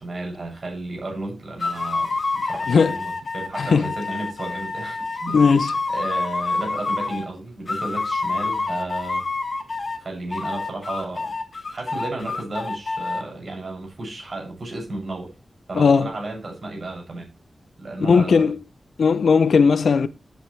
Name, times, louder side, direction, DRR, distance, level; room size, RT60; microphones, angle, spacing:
voice 1, 0.0-9.3 10.0-11.3 11.7-15.3 15.7-17.3 17.8-18.5, right 2 dB, 40° right, 7.2 m, -33 dB
sound 1, 1.6-7.3 7.7-10.0 10.3-13.2, left 3 dB, 40° left, 1.7 m, -27 dB
voice 2, 3.6-3.9 5.3-5.7 15.7-16.1 18.0-18.6 19.0-20.1, left 5 dB, 70° left, 0.6 m, -17 dB
13.0 x 9.2 x 3.3 m
wide cardioid pair, 175°, 0 cm